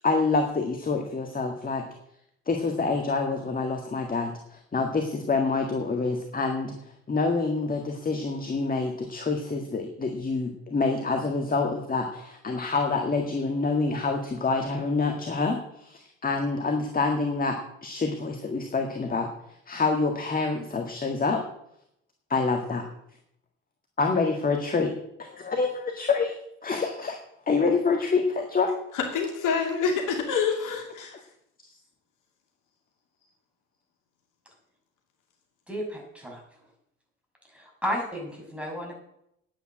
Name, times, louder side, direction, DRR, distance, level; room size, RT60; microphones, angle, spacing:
voice 1, 0.0-1.8 2.5-6.7 7.1-19.3 19.7-21.4 22.3-22.8 24.0-24.9 25.2-26.3 26.6-27.2 27.5-28.7, left 4 dB, 20° left, 4 dB, 1.8 m, -27 dB
voice 2, 28.9-31.2, left 5 dB, 50° left, 2 dB, 2.6 m, -27 dB
voice 3, 35.7-36.4 37.5-38.9, equal, 5° right, 0 dB, 6.1 m, -33 dB
10.5 x 8.7 x 7.7 m, 0.76 s
figure-of-eight pair, 60°, 40 cm